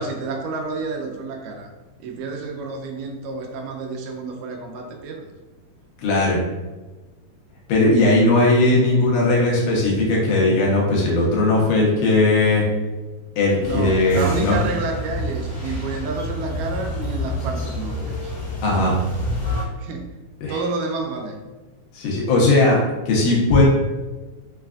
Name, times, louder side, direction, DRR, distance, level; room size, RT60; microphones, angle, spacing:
voice 1, 0.0-1.7 2.0-5.3 13.6-18.4 19.8-20.2 20.5-21.4, right 4 dB, 90° right, 2 dB, 2.2 m, -30 dB
voice 2, 6.0-6.4 7.7-12.6 13.4-14.6 18.6-19.0 20.4-20.6 21.9-22.8 23.1-23.6, left 2 dB, 85° left, -3 dB, 2.5 m, -18 dB
sound 1, 13.6-19.6, left 1 dB, 50° left, 1.3 m, -28 dB
5.8 x 2.4 x 2.3 m, 1.2 s
omnidirectional pair, 3.7 m